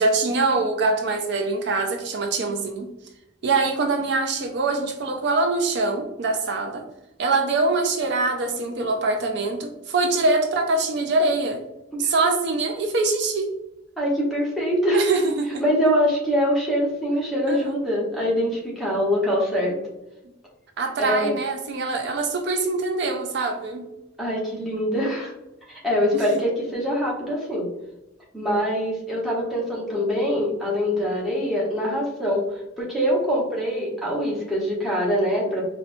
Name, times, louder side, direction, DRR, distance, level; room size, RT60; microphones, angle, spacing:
voice 1, 0.0-2.9 3.4-6.8 7.2-11.6 12.0-13.5 14.9-15.6 17.5-17.7 20.8-23.8 26.1-26.3, right 3 dB, 60° right, 4 dB, 0.4 m, -23 dB
voice 2, 14.0-15.0 15.6-19.8 21.0-21.3 24.2-25.3 25.7-27.6 28.3-35.6, equal, ahead, -6 dB, 0.9 m, -24 dB
4.2 x 2.2 x 2.5 m, 0.96 s
head